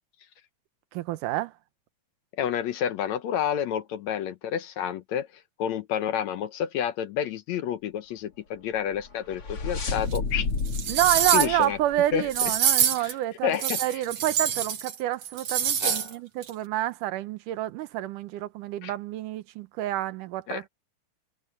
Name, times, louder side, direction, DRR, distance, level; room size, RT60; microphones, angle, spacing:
voice 1, 0.9-1.5 10.9-20.7, right 14 dB, 80° right, 2.3 m, -28 dB
voice 2, 2.4-5.3 5.6-10.5 11.3-11.8 12.1-12.5 13.0-13.1 13.4-14.0 15.8-16.1 18.8-18.9 20.5-20.7, left 9 dB, 70° left, 1.9 m, -29 dB
sound 1, 8.9-12.5, left 4 dB, 45° left, 3.8 m, -32 dB
sound 2, 10.1-10.2 10.7-11.6 12.3-13.1 13.5-15.0 15.2-16.1 16.4-16.5, right 8 dB, 55° right, 2.7 m, -25 dB
omnidirectional pair, 3.7 m